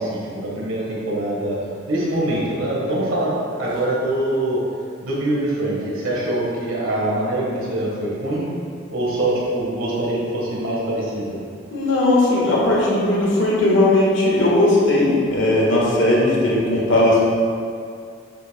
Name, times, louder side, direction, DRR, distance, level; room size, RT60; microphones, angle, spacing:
voice 1, 0.0-1.6 1.9-4.6 5.0-8.4 8.9-11.4, right 1 dB, 85° right, -5 dB, 1.5 m, -24 dB
voice 2, 11.7-17.2, left 1 dB, 65° left, -4 dB, 1.6 m, -17 dB
7.9 x 7.5 x 2.3 m, 2.3 s
head